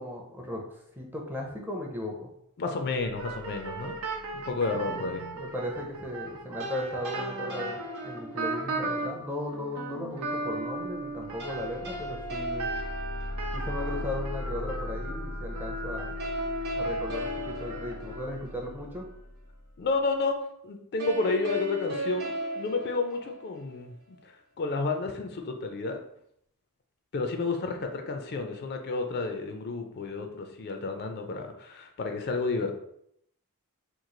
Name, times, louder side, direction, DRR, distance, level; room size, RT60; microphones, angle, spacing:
voice 1, 0.0-2.3 4.9-12.7 13.5-16.1 16.7-19.0, left 1 dB, 10° right, 1 dB, 0.5 m, -36 dB
voice 2, 2.6-4.0 4.3-5.2 19.8-20.4 20.6-26.0 27.1-32.7, left 3 dB, 50° left, 4 dB, 0.4 m, -31 dB
sound 1, 2.9-6.5 10.8-20.0, left 1 dB, 80° left, 0.7 m, -40 dB
sound 2, 3.1-9.2 9.5-18.4, right 2 dB, 85° right, 0.7 m, -37 dB
sound 3, 6.6-8.8 11.4-13.8 16.2-18.7 21.0-23.8, equal, 50° right, 0.7 m, -37 dB
3.0 x 2.3 x 3.8 m, 0.72 s
head